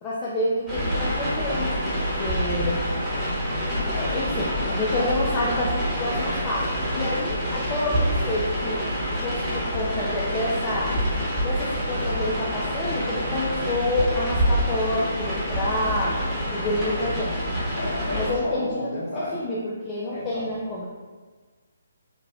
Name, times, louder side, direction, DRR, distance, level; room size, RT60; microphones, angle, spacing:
voice 1, 0.0-2.8 3.8-8.8 9.2-11.0 11.4-16.1 16.5-17.4 18.1-18.8 19.1-20.9, left 1 dB, 20° left, -6 dB, 0.4 m, -28 dB
sound 1, 0.7-18.3, equal, ahead, 1.1 m, -27 dB
voice 2, 17.8-19.4 20.1-20.5, left 1 dB, 35° left, -6 dB, 1.1 m, -32 dB
3.9 x 2.2 x 2.8 m, 1.4 s
figure-of-eight pair, 140°, 0 cm